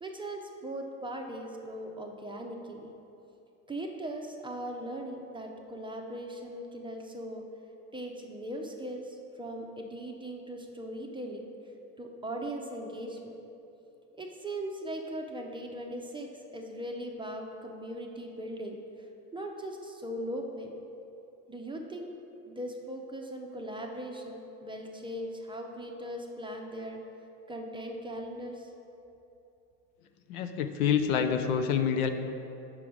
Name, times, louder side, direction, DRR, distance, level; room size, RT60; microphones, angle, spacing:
voice 1, 0.0-2.9 3.7-7.4 7.9-11.4 12.0-13.3 14.2-18.8 19.3-20.7 21.5-22.1 22.5-27.0 27.5-28.7, right 1 dB, 10° right, 2 dB, 0.6 m, -39 dB
voice 2, 30.3-32.1, left 7 dB, 75° left, 7 dB, 0.6 m, -27 dB
6.0 x 4.6 x 5.0 m, 2.8 s
hypercardioid pair, 80°, 44 cm